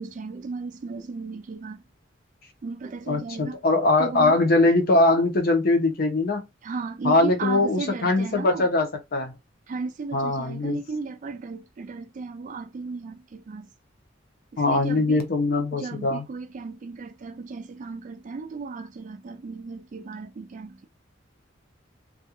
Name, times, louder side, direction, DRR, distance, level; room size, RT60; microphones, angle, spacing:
voice 1, 0.0-1.8 2.6-3.6 4.0-4.4 6.6-8.7 9.7-13.7 14.5-15.2 15.7-20.9, right 4 dB, 40° right, 0.3 m, -35 dB
voice 2, 3.1-6.4 7.0-9.4 10.1-10.8 14.6-16.2, left 2 dB, 50° left, 0.6 m, -22 dB
2.3 x 2.2 x 2.8 m
head